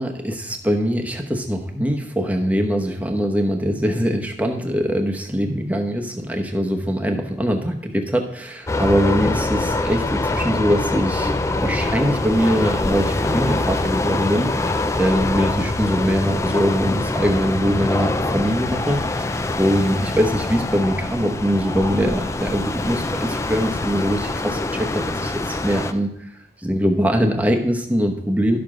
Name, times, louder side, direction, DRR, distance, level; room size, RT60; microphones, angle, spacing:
voice 1, 0.0-11.3 11.6-26.1 26.6-28.6, equal, 10° right, 3 dB, 0.9 m, -22 dB
sound 1, 8.7-25.9, left 2 dB, 15° left, 0.3 m, -24 dB
12.0 x 6.7 x 3.7 m, 0.79 s
head